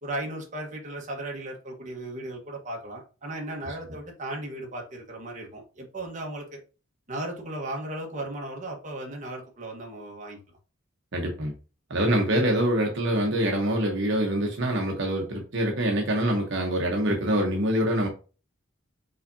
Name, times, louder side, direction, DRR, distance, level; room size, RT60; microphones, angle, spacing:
voice 1, 0.0-6.6 7.1-10.4, right 1 dB, 40° right, 1.3 m, -36 dB
voice 2, 11.1-11.5 11.9-18.1, right 1 dB, 65° right, 0.9 m, -25 dB
5.5 x 3.5 x 2.7 m
head